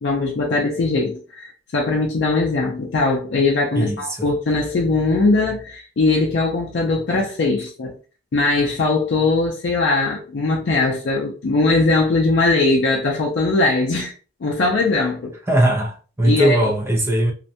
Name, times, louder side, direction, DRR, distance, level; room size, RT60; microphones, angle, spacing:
voice 1, 0.0-7.9 8.3-14.1 14.4-15.3 16.2-16.7, left 3 dB, 75° left, 0.4 m, -20 dB
voice 2, 3.7-4.3 15.5-17.3, right 1 dB, 15° right, 0.4 m, -19 dB
2.5 x 2.1 x 2.6 m
head